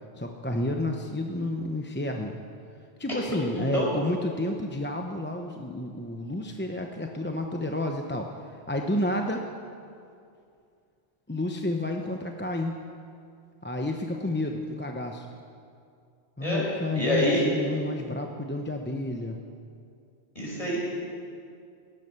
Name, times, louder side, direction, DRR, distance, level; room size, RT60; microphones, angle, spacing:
voice 1, 0.2-2.4 3.0-8.3 8.7-9.5 11.3-12.8 13.6-15.3 16.4-19.4, left 1 dB, 10° left, 3 dB, 0.7 m, -30 dB
voice 2, 3.6-3.9 16.4-16.6 16.9-17.5 20.3-20.8, left 1 dB, 30° left, -5 dB, 5.1 m, -26 dB
16.5 x 11.0 x 6.8 m, 2.4 s
omnidirectional pair, 1.2 m